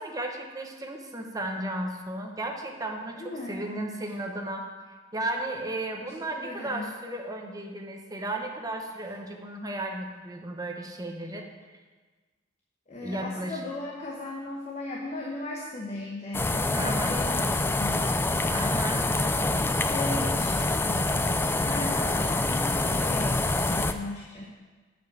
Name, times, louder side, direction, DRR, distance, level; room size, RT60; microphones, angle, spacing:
voice 1, 0.0-3.2 3.5-4.7 5.1-11.5 13.0-13.6 16.4-17.1 18.5-19.1, right 1 dB, 20° right, 2 dB, 1.0 m, -34 dB
voice 2, 3.2-3.6 6.0-6.9 12.9-18.1 18.9-24.4, left 2 dB, 35° left, -2 dB, 1.0 m, -37 dB
sound 1, 16.3-23.9, left 2 dB, 10° left, 0.3 m, -26 dB
7.3 x 5.5 x 7.5 m, 1.3 s
head